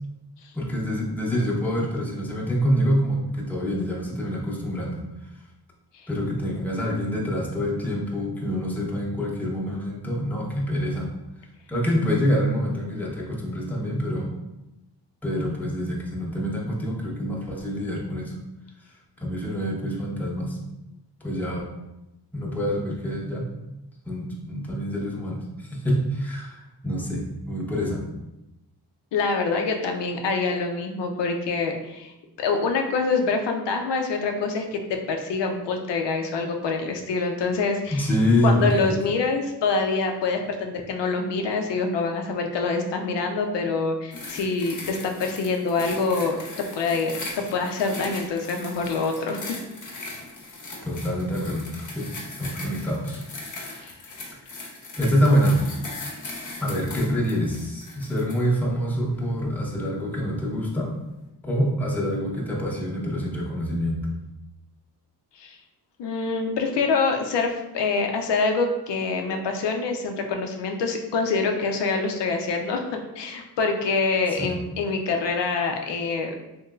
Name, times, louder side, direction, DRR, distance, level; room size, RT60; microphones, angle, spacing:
voice 1, 0.5-5.0 6.1-11.1 11.7-14.4 15.2-18.3 19.2-20.6 21.2-21.7 22.3-23.5 24.0-28.0 37.9-38.9 50.8-52.1 52.4-53.2 53.5-53.9 55.0-55.7 56.6-60.9 61.4-64.1 74.4-74.6, equal, 5° left, -4 dB, 0.7 m, -26 dB
voice 2, 29.1-32.1 32.4-38.1 38.4-49.4 53.8-53.9 65.4-65.6 66.0-76.3, left 4 dB, 85° left, 3 dB, 0.5 m, -25 dB
sound 1, 44.1-58.5 59.1-59.2, left 2 dB, 45° left, 0.7 m, -39 dB
3.1 x 2.8 x 2.3 m, 0.94 s
cardioid pair, 75°, 41 cm